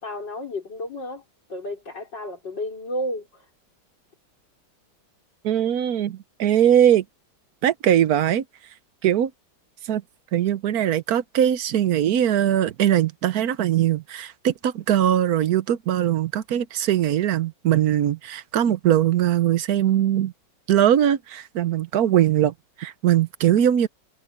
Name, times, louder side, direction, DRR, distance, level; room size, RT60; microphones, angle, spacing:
voice 1, 0.0-1.2 1.5-3.3, left 1 dB, 80° left, 5.6 m, -31 dB
voice 2, 5.4-7.0 7.6-8.4 9.0-9.3 9.9-10.0 10.3-20.3 20.7-23.9, right 10 dB, 65° right, 1.2 m, -21 dB
omnidirectional pair, 1.9 m